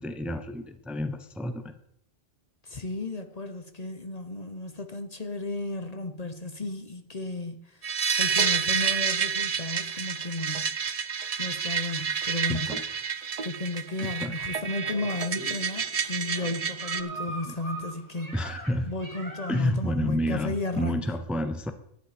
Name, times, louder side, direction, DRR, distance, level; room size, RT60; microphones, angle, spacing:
voice 1, 0.0-1.7 12.5-12.8 14.0-14.4 17.5-17.6 18.3-18.9 19.5-21.7, left 1 dB, ahead, 9 dB, 0.8 m, -30 dB
voice 2, 2.6-7.8 8.1-10.7 11.4-12.7 13.4-18.3 18.9-21.0, left 2 dB, 40° left, 8 dB, 1.0 m, -34 dB
sound 1, 7.8-17.0, right 6 dB, 40° right, 0.7 m, -29 dB
sound 2, 14.8-19.8, right 1 dB, 15° right, 2.0 m, -41 dB
12.0 x 9.9 x 5.0 m, 0.72 s
omnidirectional pair, 1.1 m